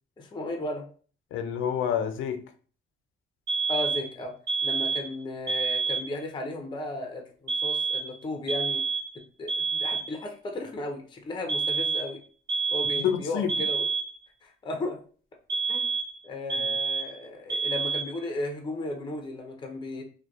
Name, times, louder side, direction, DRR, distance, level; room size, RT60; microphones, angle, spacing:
voice 1, 0.2-0.8 3.7-4.3 4.6-8.8 9.4-12.2 12.7-13.9 14.4-15.0 15.7-15.9 16.2-20.0, left 2 dB, 25° left, 0.5 m, -35 dB
voice 2, 1.3-2.5 13.0-13.6 16.6-16.7, left 8 dB, 80° left, 0.4 m, -28 dB
sound 1, 3.5-4.1 4.5-5.1 5.5-6.1 7.5-8.2 8.5-9.1 9.5-10.1 11.5-12.1 12.5-13.2 13.5-14.2 15.5-16.2 16.5-17.2 17.5-18.2, right 4 dB, 55° right, 1.4 m, -28 dB
2.6 x 2.1 x 2.3 m
cardioid pair, 90°, 20 cm